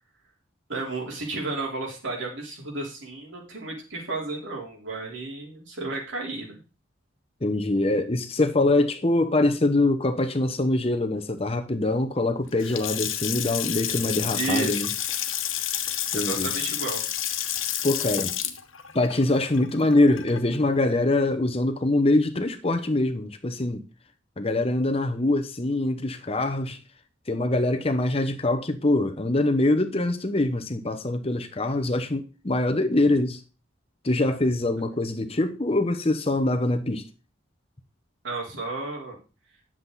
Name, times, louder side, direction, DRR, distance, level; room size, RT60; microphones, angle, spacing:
voice 1, 0.7-6.6 14.3-14.9 15.8-17.0 38.2-39.2, right 3 dB, 70° right, 3.8 m, -32 dB
voice 2, 7.4-14.9 16.1-16.5 17.8-18.3 18.9-23.8 24.4-26.8 27.3-33.4 34.0-37.1, left 2 dB, 30° left, 0.9 m, -24 dB
Water tap faucet / Sink (filling or washing) / Splash splatter, 12.5-20.6, left 11 dB, 80° left, 1.2 m, -30 dB
10.5 x 7.4 x 4.0 m
head